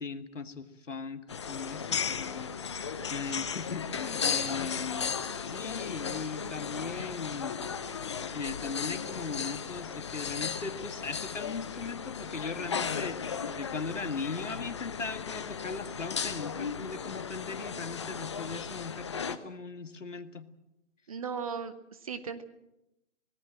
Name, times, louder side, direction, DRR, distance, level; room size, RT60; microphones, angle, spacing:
voice 1, 0.0-7.6 8.3-20.5, left 4 dB, 70° left, 10 dB, 2.0 m, -39 dB
sound 1, 1.3-19.4, left 6 dB, 20° left, 0.7 m, -36 dB
voice 2, 21.1-22.4, right 6 dB, 25° right, 12 dB, 1.0 m, -37 dB
26.0 x 18.0 x 7.6 m, 0.89 s
figure-of-eight pair, 150°, 39 cm